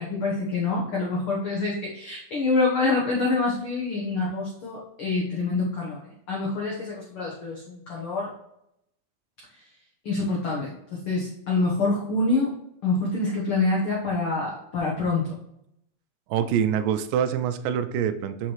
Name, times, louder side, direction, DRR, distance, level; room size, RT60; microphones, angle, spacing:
voice 1, 0.0-8.3 10.0-12.5 12.8-15.3, left 3 dB, 65° left, -3 dB, 1.3 m, -26 dB
voice 2, 16.3-18.5, right 8 dB, 85° right, 10 dB, 2.2 m, -25 dB
5.9 x 5.5 x 3.0 m, 0.79 s
omnidirectional pair, 3.9 m